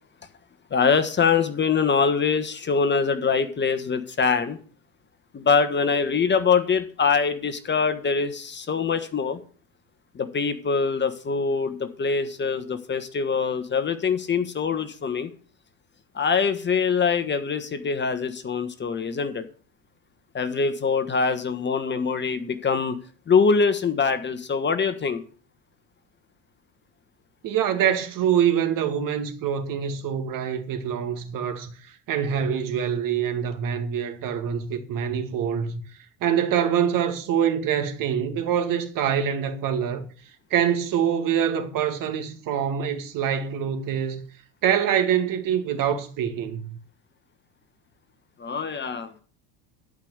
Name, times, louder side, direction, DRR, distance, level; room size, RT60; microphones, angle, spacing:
voice 1, 0.7-4.6 5.3-9.4 10.1-15.3 16.1-19.4 20.3-23.0 23.3-25.2 48.4-49.1, left 5 dB, 25° left, 1.3 m, -23 dB
voice 2, 27.4-31.7 32.1-35.8 36.2-40.1 40.5-44.2 44.6-46.8, right 8 dB, 50° right, 2.2 m, -25 dB
12.0 x 5.2 x 8.1 m
supercardioid pair, 100°, 40 cm